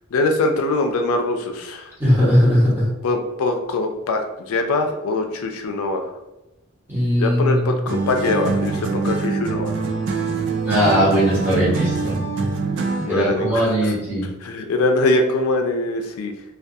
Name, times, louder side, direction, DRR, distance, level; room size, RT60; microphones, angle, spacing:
voice 1, 0.1-1.9 3.0-6.1 7.2-9.8 13.0-13.9 14.4-16.3, left 2 dB, 85° left, 5 dB, 0.4 m, -22 dB
voice 2, 2.0-2.9 6.9-7.6 10.6-12.2 13.1-14.3, equal, 10° right, -8 dB, 0.9 m, -18 dB
sound 1, 7.9-13.2, right 4 dB, 55° right, 0.3 m, -24 dB
2.3 x 2.2 x 2.6 m, 0.97 s
head